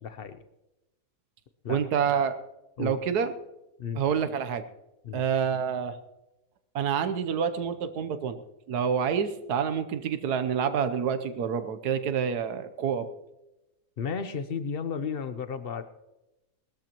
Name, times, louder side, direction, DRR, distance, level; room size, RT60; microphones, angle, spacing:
voice 1, 0.0-0.4 1.6-1.9 2.8-3.0 3.8-4.0 5.0-5.2 14.0-15.8, left 6 dB, 50° left, 11 dB, 0.7 m, -33 dB
voice 2, 1.7-2.4 2.8-3.3 3.9-4.6 5.1-6.0 6.7-8.4 8.7-13.1, right 7 dB, 70° right, 10 dB, 1.4 m, -27 dB
20.0 x 13.0 x 3.0 m, 0.97 s
omnidirectional pair, 1.8 m